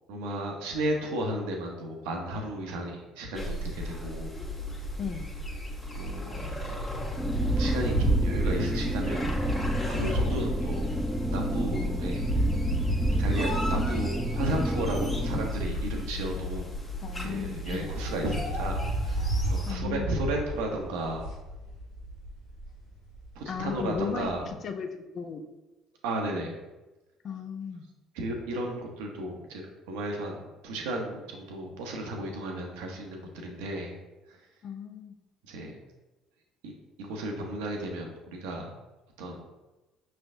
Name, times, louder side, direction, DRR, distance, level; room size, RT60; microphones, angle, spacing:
voice 1, 0.1-4.3 5.9-6.4 6.7-6.8 7.6-11.0 11.3-12.5 13.2-16.7 17.2-21.3 23.3-24.5 26.0-26.6 28.1-29.6 29.9-33.9 34.3-34.4 35.5-35.8 36.6-36.7 37.0-38.7 39.2-39.4, right 1 dB, 75° right, 2 dB, 0.7 m, -34 dB
sound 1, 3.3-19.7, left 2 dB, 30° left, 1.2 m, -34 dB
voice 2, 5.0-5.3 17.0-17.9 19.7-20.1 23.5-25.4 27.2-27.8 34.6-35.2, left 6 dB, 50° left, 6 dB, 0.5 m, -35 dB
sound 2, 7.2-15.5, right 1 dB, 10° right, 0.3 m, -32 dB
sound 3, 7.3-17.4 17.7-24.5, right 1 dB, 85° left, 1.1 m, -32 dB
5.4 x 3.3 x 2.6 m, 1.1 s
hypercardioid pair, 60°, 0 cm